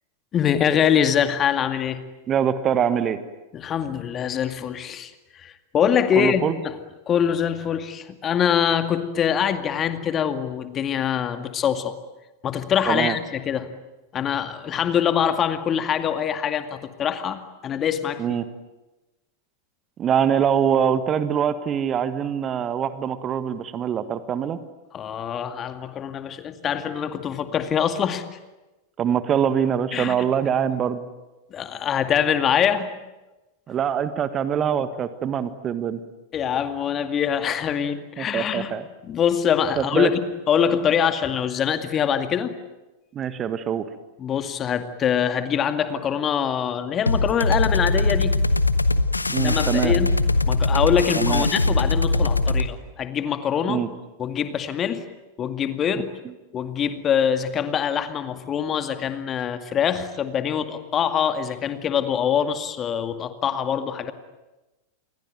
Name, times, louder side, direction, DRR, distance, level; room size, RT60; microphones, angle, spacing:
voice 1, 0.3-2.0 3.5-6.8 7.1-11.9 12.4-13.7 14.1-18.2 24.9-28.2 29.9-30.2 31.5-32.9 36.3-38.7 39.0-40.2 40.5-42.6 44.2-48.4 49.4-50.1 50.5-53.8 54.2-55.1 55.4-56.1 56.5-64.1, left 8 dB, 25° left, 9 dB, 2.2 m, -24 dB
voice 2, 2.3-3.2 6.1-6.5 12.9-13.1 18.2-18.4 20.0-24.6 29.0-31.0 33.7-36.0 38.2-38.8 39.8-40.1 43.1-43.9 49.3-49.9 51.2-51.5 53.7-53.9, right 8 dB, 25° right, 12 dB, 1.6 m, -23 dB
sound 1, 47.1-52.7, left 2 dB, 80° left, 1.2 m, -21 dB
28.5 x 22.5 x 9.2 m, 1.1 s
figure-of-eight pair, 90°, 0 cm